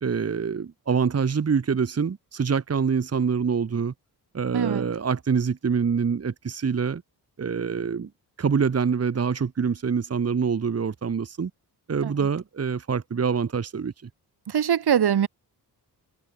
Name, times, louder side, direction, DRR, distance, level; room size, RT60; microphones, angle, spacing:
voice 1, 0.0-3.9 4.3-7.0 7.4-8.1 8.4-11.5 11.9-13.9, right 6 dB, 35° right, 2.3 m, -25 dB
voice 2, 4.5-4.8 12.0-12.3 14.5-15.3, right 9 dB, 70° right, 4.5 m, -23 dB
wide cardioid pair, 165°, 40 cm